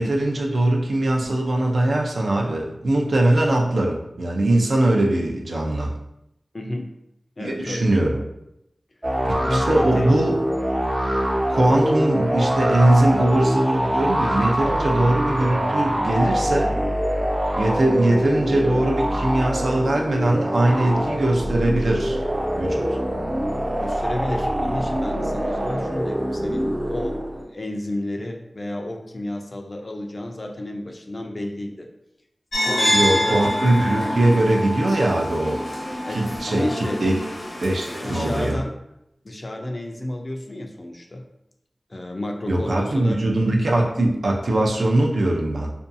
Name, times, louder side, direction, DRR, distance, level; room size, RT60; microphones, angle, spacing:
voice 1, 0.0-5.9 7.4-8.2 9.2-10.4 11.5-16.8 17.6-22.2 22.6-23.0 32.9-35.6 36.1-36.7 37.0-37.1 37.6-38.6 42.5-45.7, right 1 dB, 90° right, -1 dB, 0.4 m, -21 dB
voice 2, 6.5-6.9 7.4-7.9 9.3-10.2 23.8-27.2 27.5-31.9 32.6-33.4 36.0-36.2 36.5-37.0 38.0-38.7 39.2-41.2 41.9-43.2, left 1 dB, 40° left, 3 dB, 0.4 m, -31 dB
sound 1, 9.0-27.4, equal, 25° right, 0.4 m, -24 dB
sound 2, 32.5-38.5, left 1 dB, 65° left, 0.8 m, -26 dB
2.6 x 2.3 x 2.5 m, 0.82 s
wide cardioid pair, 80°, 0 cm